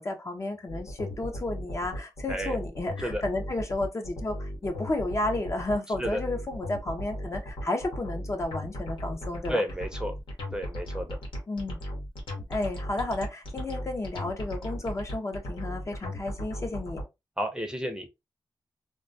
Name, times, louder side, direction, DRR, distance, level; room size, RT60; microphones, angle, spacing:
voice 1, 0.0-9.6 11.5-11.8 12.5-17.0, left 2 dB, 35° left, 0.5 m, -32 dB
sound 1, 0.7-17.0, equal, 85° left, 0.9 m, -36 dB
voice 2, 9.5-10.1 10.5-11.2 17.4-18.1, equal, 10° right, 0.6 m, -31 dB
2.2 x 2.2 x 2.5 m
cardioid pair, 75°, 8 cm